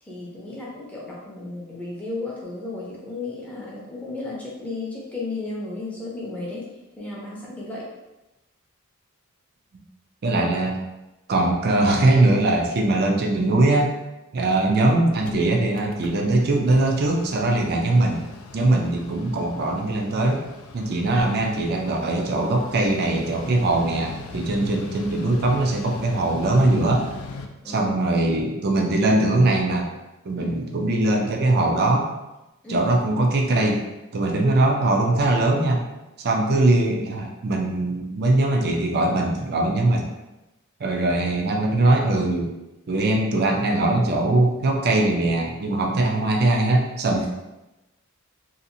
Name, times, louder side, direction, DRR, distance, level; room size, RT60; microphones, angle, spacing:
voice 1, 0.0-7.9 27.6-28.1 30.4-30.6 32.6-32.8 36.4-36.5 47.1-47.3, left 2 dB, 5° left, -5 dB, 0.6 m, -34 dB
voice 2, 10.2-10.8 11.3-13.9 14.3-18.3 18.5-20.4 20.7-27.1 27.7-29.9 30.2-32.1 32.7-33.8 34.1-35.8 36.2-40.1 40.8-42.5 42.9-47.3, right 2 dB, 45° right, 1 dB, 0.4 m, -21 dB
Mechanical fan, 15.2-27.5, left 4 dB, 70° left, 0.3 m, -40 dB
2.7 x 2.4 x 2.6 m, 1.0 s
head